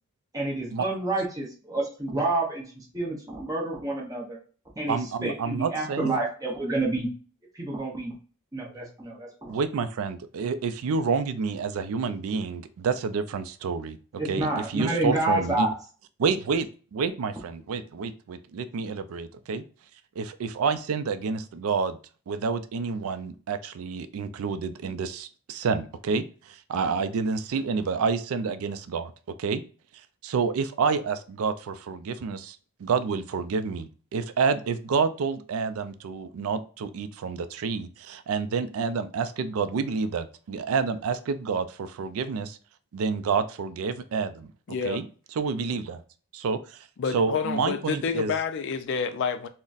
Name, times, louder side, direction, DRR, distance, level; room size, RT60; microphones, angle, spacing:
voice 1, 0.3-4.4 4.8-5.0 5.2-7.1 7.5-8.1 8.5-9.5 14.2-15.7, right 2 dB, 15° right, 0.7 m, -29 dB
voice 2, 4.9-6.2 9.5-14.0 14.3-15.7 16.2-19.6 20.2-22.0 22.3-29.1 29.4-29.6 30.2-42.6 42.9-44.5 44.8-45.1 45.4-46.0 46.3-46.8 47.1-48.3, right 5 dB, 75° right, 0.3 m, -29 dB
voice 3, 44.7-45.0 47.0-49.5, left 6 dB, 55° left, 0.3 m, -28 dB
3.9 x 2.1 x 2.4 m
head